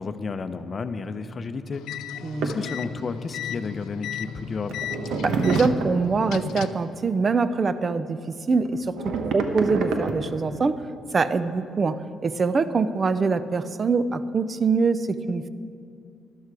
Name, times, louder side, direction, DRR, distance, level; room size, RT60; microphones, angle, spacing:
voice 1, 0.0-1.8 2.4-4.8, left 4 dB, 40° left, 10 dB, 0.7 m, -32 dB
sound 1, 1.7-6.9, left 9 dB, 85° left, 0.4 m, -35 dB
voice 2, 2.2-2.5 5.2-9.0 9.3-10.8 11.1-15.5, right 4 dB, 40° right, 13 dB, 0.5 m, -24 dB
sound 2, 2.4-2.6 4.3-4.4 4.7-6.1 8.6-10.4, right 4 dB, 85° right, 1.0 m, -27 dB
12.5 x 11.5 x 4.8 m, 2.5 s
cardioid pair, 90°, 0 cm